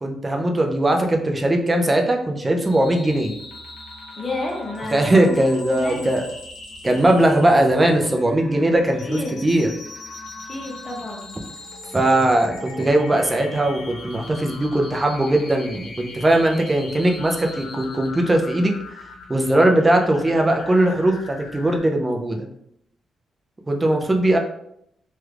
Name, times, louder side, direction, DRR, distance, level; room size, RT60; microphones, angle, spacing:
voice 1, 0.0-3.3 4.9-6.3 6.8-9.7 11.9-18.7 19.3-22.5 23.7-24.4, right 1 dB, 15° right, 3 dB, 0.4 m, -19 dB
sound 1, 2.6-21.8, left 2 dB, 85° left, 1.0 m, -39 dB
voice 2, 4.2-6.1 9.0-9.4 10.5-11.3, left 2 dB, 25° left, -1 dB, 0.8 m, -30 dB
3.1 x 2.3 x 3.2 m, 0.73 s
wide cardioid pair, 145°, 0 cm